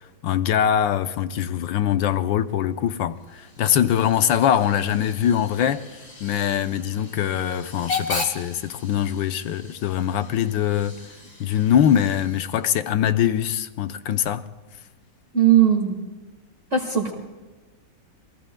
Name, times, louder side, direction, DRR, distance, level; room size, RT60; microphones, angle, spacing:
voice 1, 0.2-5.8 6.2-11.0 11.4-14.4, left 9 dB, 85° left, 1.5 m, -22 dB
Hiss / Train / Alarm, 3.2-12.8, left 3 dB, 30° left, 2.7 m, -37 dB
voice 2, 15.3-16.0 16.7-17.1, right 9 dB, 40° right, 2.0 m, -18 dB
28.5 x 22.0 x 2.3 m
omnidirectional pair, 2.0 m